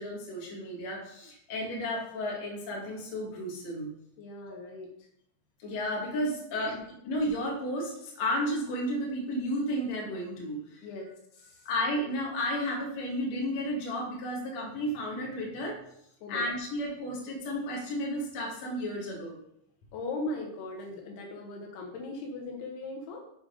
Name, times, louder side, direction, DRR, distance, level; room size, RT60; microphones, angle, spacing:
voice 1, 0.0-3.9 4.5-4.6 5.6-6.8 7.0-10.9 11.7-15.8 16.3-19.4, equal, 50° left, -2 dB, 2.7 m, -33 dB
voice 2, 4.2-4.9 6.7-6.8 10.8-11.7 16.2-16.4 19.9-23.2, left 2 dB, 75° left, 1 dB, 3.0 m, -39 dB
7.9 x 6.7 x 3.9 m, 0.74 s
omnidirectional pair, 4.7 m